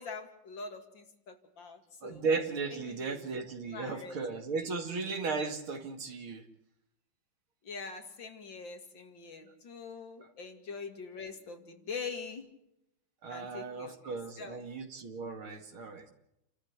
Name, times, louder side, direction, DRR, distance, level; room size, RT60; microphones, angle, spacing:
voice 1, 0.0-2.2 2.9-3.2 3.7-4.2 7.6-12.5 13.3-14.6, left 4 dB, 60° left, 6 dB, 3.0 m, -44 dB
voice 2, 2.0-6.5 13.2-16.1, right 4 dB, 75° right, 6 dB, 3.1 m, -36 dB
29.5 x 13.5 x 8.2 m, 0.82 s
omnidirectional pair, 2.3 m